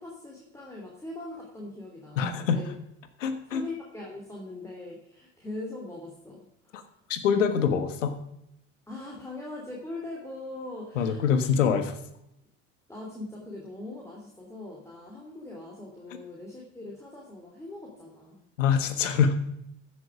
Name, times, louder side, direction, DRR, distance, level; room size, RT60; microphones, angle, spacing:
voice 1, 0.0-2.2 2.5-2.7 3.5-7.0 8.9-11.5 12.9-18.4, left 2 dB, 5° left, -3 dB, 3.0 m, -41 dB
voice 2, 2.2-2.6 3.2-3.6 6.7-6.8 7.1-8.2 10.9-12.0 18.6-19.3, left 7 dB, 75° left, 10 dB, 1.5 m, -24 dB
14.5 x 7.1 x 5.0 m, 0.80 s
hypercardioid pair, 70°, 38 cm